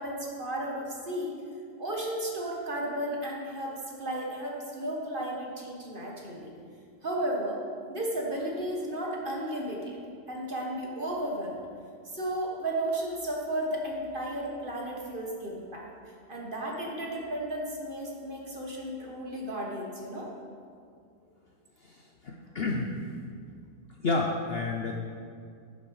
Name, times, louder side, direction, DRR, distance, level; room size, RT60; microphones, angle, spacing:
voice 1, 0.0-1.3 1.8-6.5 7.0-7.6 7.9-10.0 10.3-11.6 12.1-15.8 16.3-20.3, right 1 dB, 35° right, -2 dB, 1.6 m, -34 dB
voice 2, 21.8-22.9 24.0-24.9, left 3 dB, 50° left, 0 dB, 0.8 m, -30 dB
12.0 x 7.2 x 4.8 m, 2.3 s
omnidirectional pair, 1.6 m